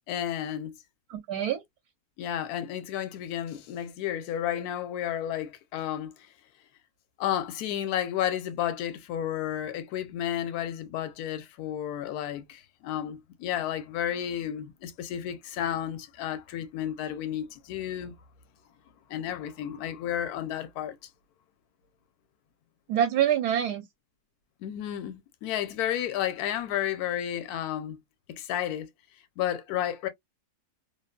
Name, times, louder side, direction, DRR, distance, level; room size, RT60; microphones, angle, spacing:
voice 1, 0.1-0.7 2.2-6.3 7.2-18.2 19.1-21.0 24.6-28.0 28.3-28.9 29.4-30.1, left 11 dB, 75° left, 1.1 m, -32 dB
voice 2, 1.1-1.6 22.9-23.8, right 10 dB, 80° right, 1.1 m, -25 dB
2.8 x 2.1 x 2.2 m
omnidirectional pair, 1.7 m